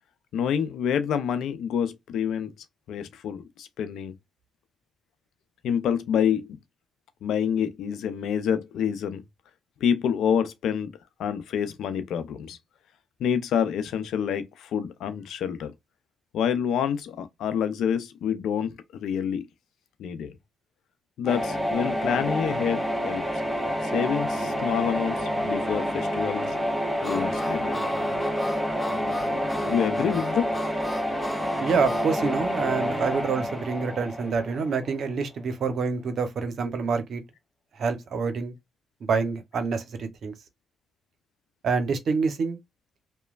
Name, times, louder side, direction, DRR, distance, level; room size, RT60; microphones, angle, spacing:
voice 1, 0.3-2.5 2.9-4.1 5.6-6.6 7.2-9.2 9.8-10.9 11.2-12.6 13.2-15.7 16.3-19.5 20.0-20.3 21.2-23.2 23.8-26.5 27.0-27.7 29.3-30.5 32.2-32.3, left 8 dB, 75° left, 0.5 m, -27 dB
sound 1, 21.3-35.1, equal, 5° right, 1.3 m, -28 dB
Harmonica, 27.0-32.1, left 1 dB, 25° left, 0.6 m, -38 dB
voice 2, 31.6-37.2 37.8-38.5 39.0-40.3 41.6-42.6, right 5 dB, 60° right, 0.7 m, -27 dB
3.0 x 2.2 x 2.3 m
supercardioid pair, 60°, 0 cm